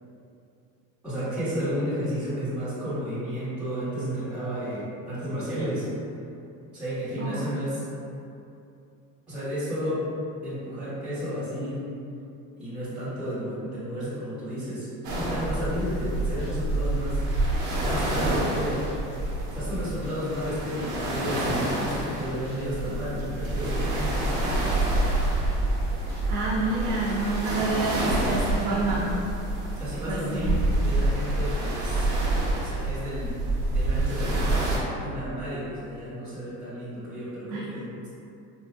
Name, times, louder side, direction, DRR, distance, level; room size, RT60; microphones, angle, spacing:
voice 1, 1.0-5.9 6.7-7.8 9.3-10.0 10.4-11.8 12.5-17.2 17.8-18.9 19.5-24.3 29.8-32.1 32.6-33.3 33.7-34.5 35.0-38.1, equal, 5° right, -16 dB, 1.2 m, -32 dB
voice 2, 7.2-7.5 26.3-29.1 30.1-30.6 37.5-37.6, right 3 dB, 75° right, -6 dB, 0.6 m, -28 dB
sound 1, 15.0-34.8, right 2 dB, 50° right, 1.0 m, -27 dB
sound 2, 15.9-29.1 29.4-29.5 29.9-30.0, equal, 85° left, 1.3 m, -45 dB
4.5 x 2.6 x 2.2 m, 2.7 s
cardioid pair, 180°, 35 cm